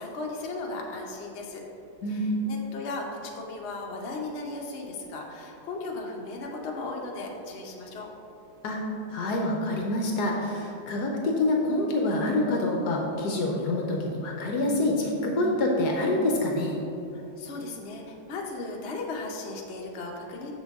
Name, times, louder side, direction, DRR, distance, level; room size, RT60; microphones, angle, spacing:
voice 1, 0.0-1.6 2.1-8.1 17.1-20.5, left 3 dB, 50° left, -1 dB, 0.8 m, -36 dB
voice 2, 9.1-16.8, left 2 dB, 65° left, 0 dB, 1.1 m, -26 dB
7.1 x 6.2 x 3.6 m, 2.8 s
omnidirectional pair, 2.0 m